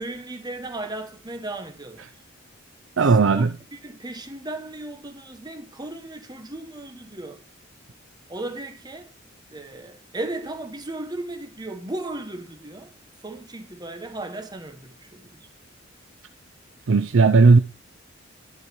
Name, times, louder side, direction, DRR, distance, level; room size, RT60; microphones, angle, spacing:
voice 1, 0.0-2.1 3.1-7.4 8.3-9.1 9.5-12.9 13.2-15.5, right 2 dB, 20° right, 1.1 m, -36 dB
voice 2, 3.0-3.5 16.9-17.6, right 4 dB, 65° right, 0.5 m, -15 dB
11.0 x 4.9 x 4.4 m
head